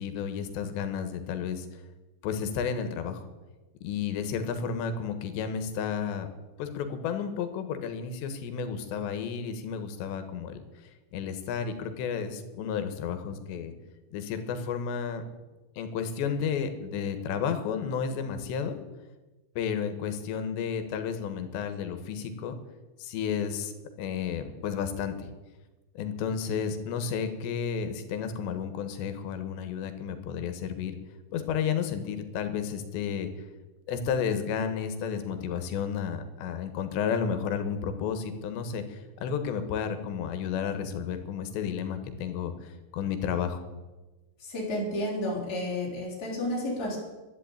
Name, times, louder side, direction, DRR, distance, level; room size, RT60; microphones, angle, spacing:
voice 1, 0.0-1.7 2.2-3.2 3.8-6.3 6.6-10.6 11.1-13.7 14.1-15.2 15.8-18.8 19.6-22.5 23.0-25.3 26.0-31.0 31.3-33.3 33.9-43.6, left 7 dB, 90° left, 9 dB, 3.5 m, -32 dB
voice 2, 44.4-47.0, left 1 dB, 20° left, -4 dB, 4.4 m, -31 dB
12.0 x 10.5 x 8.8 m, 1.2 s
omnidirectional pair, 4.9 m